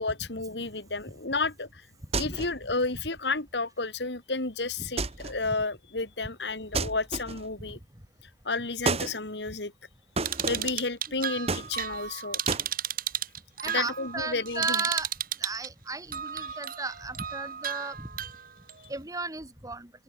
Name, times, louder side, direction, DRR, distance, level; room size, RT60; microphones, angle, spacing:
voice 1, 0.0-1.8 2.2-7.8 8.4-9.7 10.4-12.4 13.7-14.8 16.4-16.6, left 3 dB, 70° left, 2.7 m, -32 dB
sound 1, 2.1-2.7 5.0-5.5 6.7-7.6 8.8-9.2 10.2-10.8 11.5-12.1 12.5-12.7, right 3 dB, 35° right, 1.8 m, -31 dB
sound 2, 10.2-15.7 16.1-18.7, right 9 dB, 55° right, 3.8 m, -33 dB
voice 2, 13.6-15.1 15.4-18.1 18.9-19.9, right 3 dB, 20° right, 3.7 m, -34 dB
head